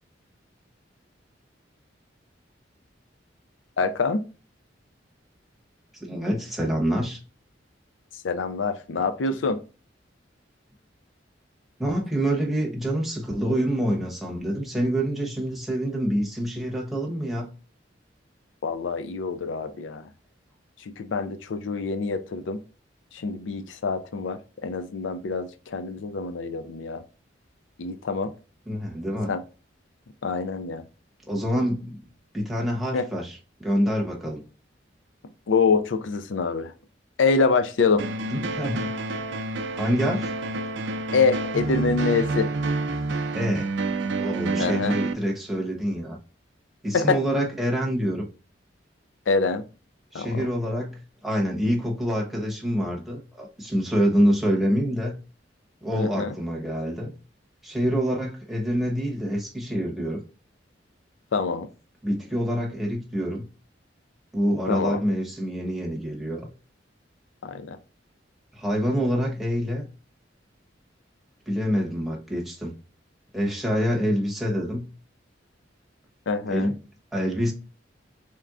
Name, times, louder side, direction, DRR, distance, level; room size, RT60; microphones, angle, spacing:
voice 1, 3.8-4.2 8.2-9.6 18.6-20.0 21.0-22.6 23.1-27.0 27.8-28.3 29.3-29.4 30.2-30.8 32.9-33.1 35.5-36.7 37.2-38.0 41.1-42.5 44.6-45.0 46.9-47.2 49.3-49.6 50.1-50.5 56.0-56.3 61.3-61.7 64.7-65.0 67.4-67.8 76.3-76.7, left 4 dB, 85° left, 0.5 m, -25 dB
voice 2, 6.0-7.2 11.8-17.5 28.7-29.3 31.3-31.9 32.3-34.4 38.3-38.9 39.7-40.3 43.3-43.6 44.2-46.2 46.8-48.2 50.1-55.1 55.8-57.1 57.6-60.2 62.0-63.4 64.3-66.5 68.5-69.9 71.5-72.7 73.3-74.9 76.5-76.8 77.1-77.5, equal, ahead, 1.1 m, -26 dB
sound 1, 38.0-45.1, right 3 dB, 70° right, 0.5 m, -28 dB
4.3 x 3.5 x 2.4 m
head